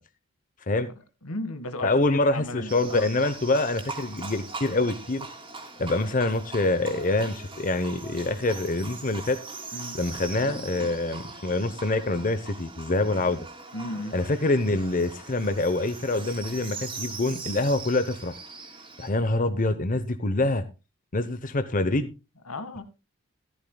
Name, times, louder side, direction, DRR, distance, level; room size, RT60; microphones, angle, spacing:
voice 1, 1.2-3.1 9.7-10.0 13.7-14.2 22.5-22.8, left 2 dB, 90° left, 1.9 m, -35 dB
voice 2, 1.8-5.3 5.8-9.4 9.9-13.5 14.1-18.4 19.0-20.6 21.1-22.1, left 2 dB, 40° left, 0.9 m, -25 dB
Livestock farm animals working animals, 2.7-19.1, right 3 dB, 25° right, 3.2 m, -41 dB
14.5 x 14.0 x 2.3 m
head